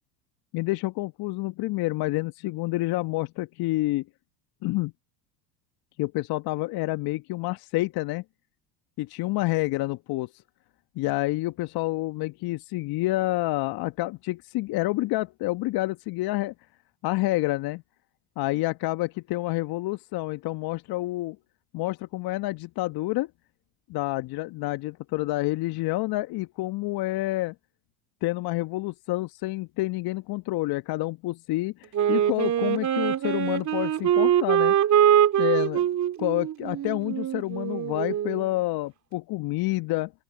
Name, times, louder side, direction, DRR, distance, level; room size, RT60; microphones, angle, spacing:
voice 1, 0.5-4.0 4.6-4.9 6.0-8.2 9.0-10.3 10.9-16.5 17.0-17.8 18.4-21.4 21.7-23.3 23.9-27.5 28.2-34.7 35.4-35.9 36.2-40.1, left 19 dB, 50° left, 1.2 m, -28 dB
Wind instrument woodwind instrument, 31.9-38.5, right 10 dB, 35° right, 2.5 m, -23 dB
open air
hypercardioid pair, 75°, 48 cm